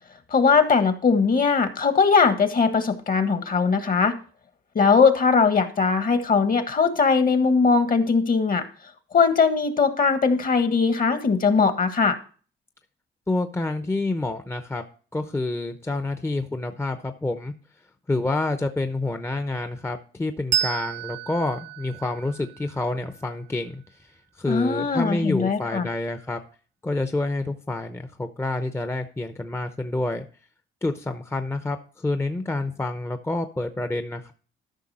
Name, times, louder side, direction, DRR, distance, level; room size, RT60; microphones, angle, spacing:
voice 1, 0.3-4.1 4.7-8.6 9.1-12.2 24.5-25.9, left 5 dB, 45° left, 9 dB, 1.5 m, -20 dB
voice 2, 13.3-14.8 15.1-17.5 18.1-23.8 24.4-26.4 26.8-30.3 30.8-34.3, left 2 dB, 15° left, 8 dB, 0.8 m, -28 dB
Bell, 20.5-23.6, right 10 dB, 65° right, 0.7 m, -31 dB
13.0 x 5.8 x 4.2 m, 0.39 s
cardioid pair, 90°, 20 cm